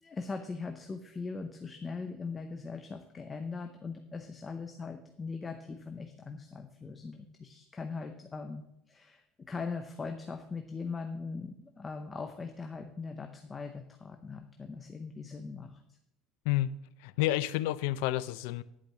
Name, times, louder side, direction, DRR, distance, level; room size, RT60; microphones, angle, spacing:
voice 1, 0.0-15.8, left 4 dB, 15° left, 5 dB, 0.6 m, -40 dB
voice 2, 17.0-18.6, left 15 dB, 85° left, 16 dB, 0.5 m, -30 dB
10.5 x 5.1 x 7.3 m, 0.77 s
cardioid pair, 165°, 0 cm